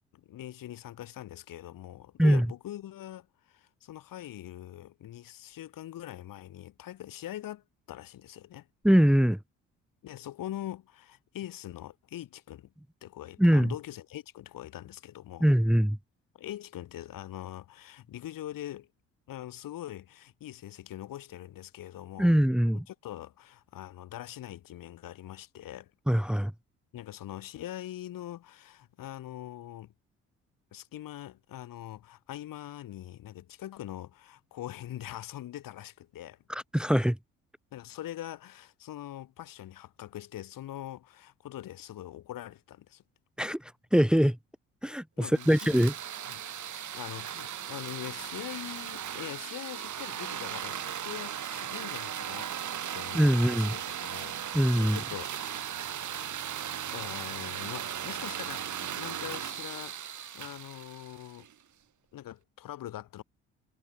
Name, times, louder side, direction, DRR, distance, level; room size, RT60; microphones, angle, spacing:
voice 1, 0.1-8.7 10.0-12.7 13.0-15.5 16.3-18.9 19.3-22.3 22.9-25.9 26.9-29.9 30.7-36.4 37.7-43.0 45.2-45.9 46.3-46.4 46.8-52.5 52.9-54.4 54.8-55.7 56.9-61.5 62.1-63.2, left 13 dB, 60° left, 5.8 m, -43 dB
voice 2, 8.8-9.4 13.4-13.7 15.4-16.0 22.2-22.9 26.1-26.5 36.5-37.2 43.4-44.4 44.8-45.9 53.1-53.8 54.5-55.0, equal, ahead, 2.2 m, -23 dB
sound 1, 45.3-61.5, right 9 dB, 50° right, 4.0 m, -37 dB
figure-of-eight pair, 45°, 37 cm